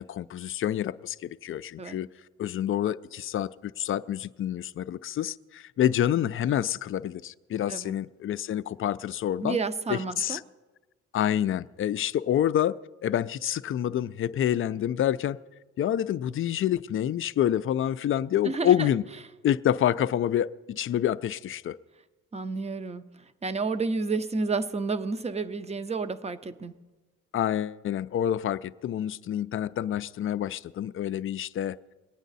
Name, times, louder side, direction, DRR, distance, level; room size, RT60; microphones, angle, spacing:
voice 1, 0.0-2.1 2.4-9.6 9.9-10.4 11.1-15.4 15.8-19.0 19.4-21.8 27.3-31.8, left 11 dB, 45° left, 15 dB, 0.4 m, -27 dB
voice 2, 9.4-10.4 18.4-18.9 22.3-23.1 23.4-26.7, right 4 dB, 20° right, 13 dB, 0.6 m, -30 dB
21.5 x 9.1 x 4.1 m, 1.3 s
cardioid pair, 90°, 30 cm